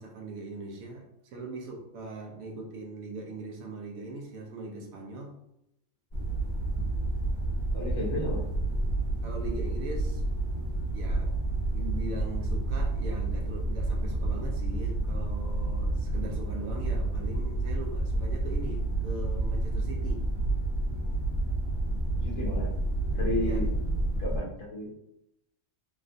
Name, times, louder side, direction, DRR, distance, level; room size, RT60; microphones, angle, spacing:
voice 1, 0.0-5.4 9.2-10.2 10.9-11.4 11.7-20.3 23.4-23.6, right 2 dB, 85° right, 1 dB, 1.1 m, -40 dB
sound 1, 6.1-24.4, right 2 dB, 25° left, 1.0 m, -29 dB
voice 2, 7.7-8.5 22.2-22.7 23.1-23.7 24.2-24.9, left 1 dB, 55° left, -3 dB, 0.9 m, -33 dB
3.3 x 2.4 x 2.5 m, 0.82 s
omnidirectional pair, 1.4 m